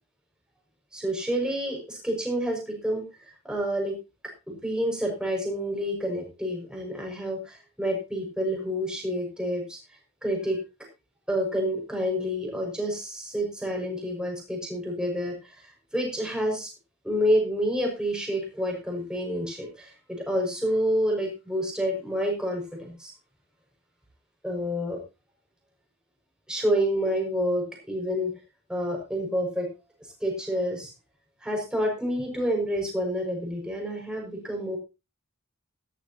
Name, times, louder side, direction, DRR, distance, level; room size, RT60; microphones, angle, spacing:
voice 1, 0.9-3.0 3.4-4.0 4.5-9.8 10.2-10.6 11.3-15.6 15.9-16.7 17.0-23.1 24.4-25.0 26.5-28.4 28.7-29.7 30.2-30.9 31.4-34.8, equal, 5° right, 0 dB, 5.8 m, -28 dB
14.5 x 14.0 x 2.9 m, 0.28 s
head